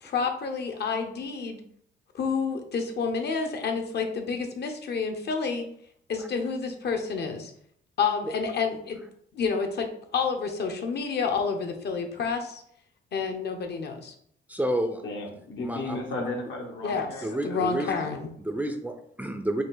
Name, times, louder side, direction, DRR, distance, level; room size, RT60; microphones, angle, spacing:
voice 1, 0.0-1.6 2.1-5.6 6.1-7.5 8.0-9.0 9.3-12.6 13.1-14.1 16.8-17.1 17.4-18.3, left 5 dB, 55° left, 5 dB, 0.9 m, -29 dB
voice 2, 14.5-15.0 15.6-16.0 17.2-17.9 18.4-19.6, right 1 dB, 10° right, 6 dB, 0.5 m, -30 dB
voice 3, 15.0-17.9, left 2 dB, 75° left, -1 dB, 1.3 m, -35 dB
5.1 x 2.5 x 3.9 m, 0.67 s
cardioid pair, 90°, 20 cm